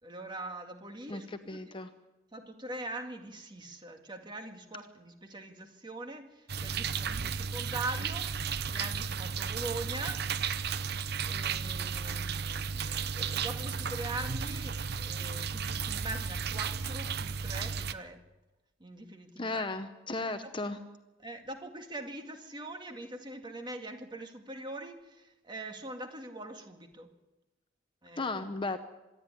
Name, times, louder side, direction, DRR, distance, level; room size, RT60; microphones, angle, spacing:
voice 1, 0.0-1.8 2.3-10.3 11.2-18.2 18.8-19.6 20.2-20.5 21.2-27.1 28.0-28.4, right 2 dB, 25° right, 5 dB, 2.1 m, -42 dB
voice 2, 1.1-1.9 19.4-20.8 28.2-28.8, left 3 dB, 25° left, 9 dB, 0.8 m, -35 dB
sound 1, 6.5-17.9, right 6 dB, 55° right, 0.8 m, -34 dB
25.5 x 10.5 x 10.0 m, 1.1 s
head